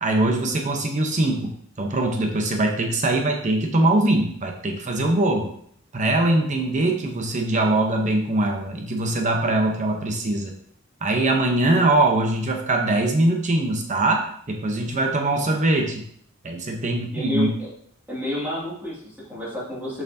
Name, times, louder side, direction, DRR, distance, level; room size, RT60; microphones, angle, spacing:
voice 1, 0.0-5.5 5.9-10.5 11.0-16.0 16.4-17.5, right 2 dB, 35° right, 3 dB, 0.8 m, -22 dB
voice 2, 17.1-17.7 18.1-20.0, left 1 dB, 10° right, -7 dB, 2.2 m, -30 dB
6.6 x 5.9 x 2.7 m, 0.65 s
head